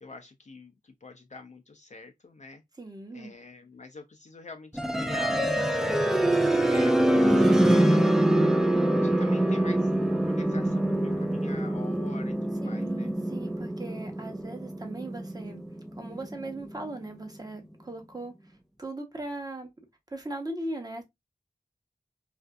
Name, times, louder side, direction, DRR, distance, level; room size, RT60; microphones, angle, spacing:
voice 1, 0.0-2.6 3.1-5.9 6.5-8.5 9.0-9.9 10.2-13.1, left 3 dB, 55° left, 0.4 m, -46 dB
voice 2, 2.8-3.3 12.6-15.6 16.0-19.7 20.1-21.0, right 2 dB, 25° right, 0.8 m, -39 dB
sound 1, 4.7-16.6, right 1 dB, 5° right, 0.4 m, -25 dB
2.5 x 2.4 x 2.2 m
wide cardioid pair, 45°, 15 cm